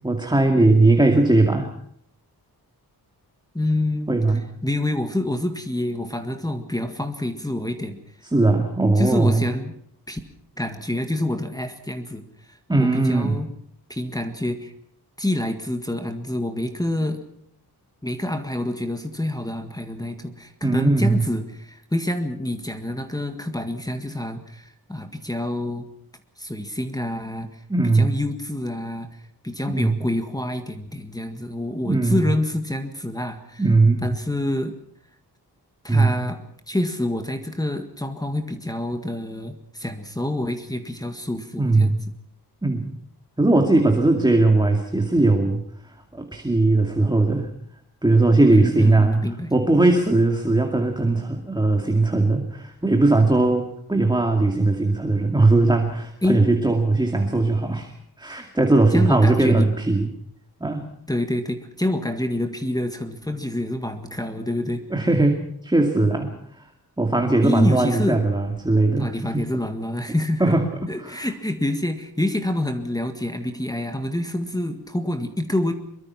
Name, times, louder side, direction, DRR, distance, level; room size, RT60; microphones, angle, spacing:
voice 1, 0.0-1.7 4.1-4.4 8.3-9.4 12.7-13.4 20.6-21.3 27.7-28.1 29.7-30.0 31.8-32.2 33.6-34.1 35.9-36.1 41.6-42.0 42.6-42.9 43.4-45.6 46.1-47.5 48.0-49.2 49.5-57.9 58.2-60.1 60.6-60.9 64.9-66.3 67.0-69.5 70.4-70.7 71.0-71.3, right 2 dB, 10° right, 3 dB, 2.3 m, -19 dB
voice 2, 3.5-4.1 4.6-8.0 9.0-9.7 10.1-10.2 10.6-13.5 13.9-14.7 15.2-17.2 18.0-25.9 26.4-27.6 27.9-29.1 29.4-33.6 34.0-34.8 35.8-36.4 36.7-42.0 48.5-49.5 56.2-56.4 58.9-59.7 61.1-64.9 67.4-68.2 69.0-70.5 70.9-75.7, left 1 dB, 10° left, 7 dB, 1.8 m, -27 dB
23.5 x 23.5 x 5.9 m, 0.66 s
wide cardioid pair, 150°, 39 cm